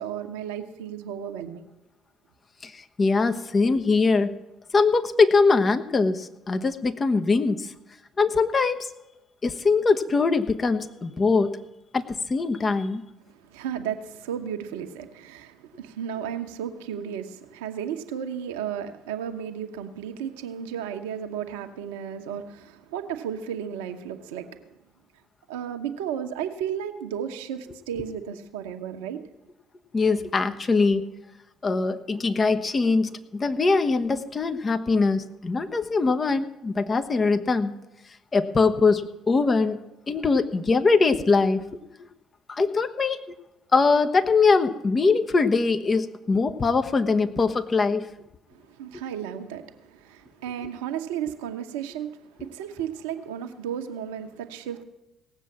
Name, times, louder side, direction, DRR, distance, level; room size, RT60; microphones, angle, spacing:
voice 1, 0.0-1.6 13.3-24.7 25.5-29.2 48.5-54.8, right 9 dB, 80° right, 6 dB, 1.0 m, -34 dB
voice 2, 2.6-4.3 4.7-7.7 8.2-8.9 9.4-11.6 11.9-13.0 29.9-31.1 31.6-37.7 38.3-42.1 42.5-43.2 43.7-48.1, left 4 dB, 35° left, 8 dB, 1.1 m, -22 dB
18.0 x 7.4 x 7.3 m, 0.95 s
hypercardioid pair, 55°, 0 cm